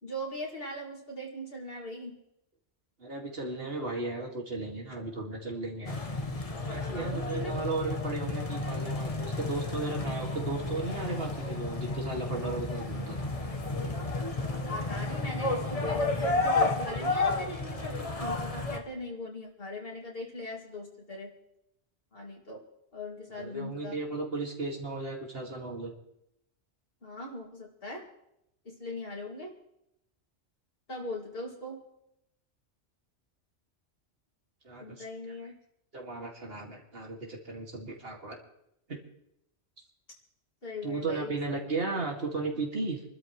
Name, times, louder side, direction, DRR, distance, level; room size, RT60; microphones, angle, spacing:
voice 1, 0.0-2.2 6.9-7.5 14.5-21.3 22.1-22.6 22.9-24.0 27.0-28.1 28.6-29.5 30.9-31.9 34.8-35.6 40.6-41.6, left 1 dB, 55° left, -1 dB, 2.6 m, -40 dB
voice 2, 3.0-5.9 6.6-13.3 23.4-25.9 34.6-35.0 35.9-38.4 38.9-39.0 40.8-43.0, right 3 dB, 60° right, 0 dB, 2.4 m, -35 dB
sound 1, 5.9-18.8, left 2 dB, 30° left, 1.3 m, -32 dB
26.5 x 12.5 x 3.1 m, 0.81 s
omnidirectional pair, 1.2 m